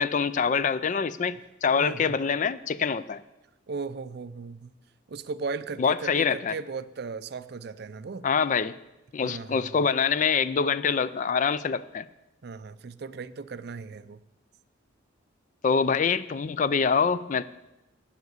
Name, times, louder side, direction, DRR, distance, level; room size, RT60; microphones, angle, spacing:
voice 1, 0.0-3.2 5.8-6.5 8.2-8.7 9.1-12.1 15.6-17.4, left 6 dB, 40° left, 16 dB, 0.3 m, -25 dB
voice 2, 1.8-2.2 3.7-4.7 5.1-8.3 9.2-9.7 12.4-14.2, right 4 dB, 55° right, 15 dB, 0.4 m, -37 dB
9.4 x 7.2 x 7.9 m, 0.98 s
head